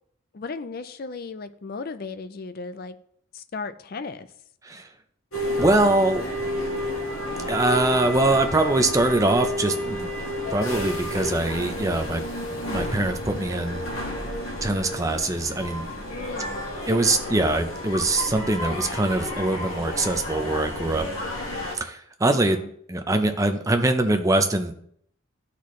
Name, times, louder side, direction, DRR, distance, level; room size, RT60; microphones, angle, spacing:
voice 1, 0.3-3.0 3.3-4.3 16.1-16.6 22.2-22.7, left 4 dB, 45° left, 0.4 m, -36 dB
sound 1, 5.3-21.7, left 1 dB, 75° left, 1.7 m, -31 dB
voice 2, 5.6-6.3 7.5-10.1 10.5-12.2 12.7-13.8 14.6-15.8 16.9-21.1 21.7-22.6 22.9-24.8, right 2 dB, 15° right, 0.5 m, -23 dB
12.0 x 4.2 x 3.1 m
head